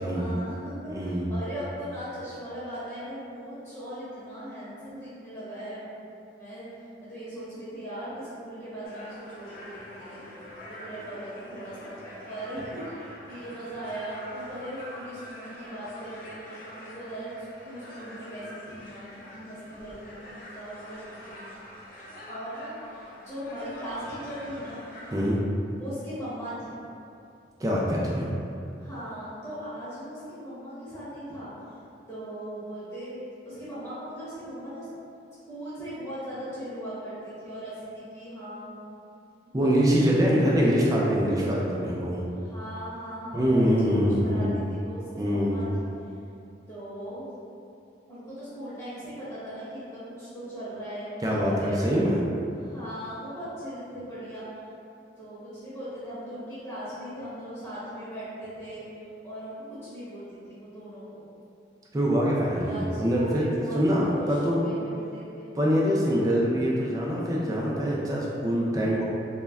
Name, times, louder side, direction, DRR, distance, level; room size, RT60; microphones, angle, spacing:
voice 1, 0.0-5.9 6.4-6.7 7.0-10.3 10.7-11.9 12.3-19.1 19.3-21.5 22.3-24.8 25.8-26.7 28.8-31.5 32.1-33.2 33.4-34.9 35.5-38.7 39.6-39.7 40.1-40.4 40.7-40.9 42.4-46.2 46.7-47.3 48.1-51.8 52.6-54.5 55.2-58.8 59.2-61.2 62.5-63.8 64.1-65.5, equal, 15° left, -13 dB, 0.8 m, -39 dB
voice 2, 0.9-1.3 25.1-25.4 27.6-28.3 39.5-42.2 43.3-44.5 45.2-45.6 51.2-52.2 61.9-64.7 65.6-69.0, equal, 20° right, -4 dB, 0.3 m, -24 dB
sound 1, 8.8-25.3, equal, 50° left, 0.5 m, -45 dB
2.1 x 2.1 x 3.4 m, 2.6 s
head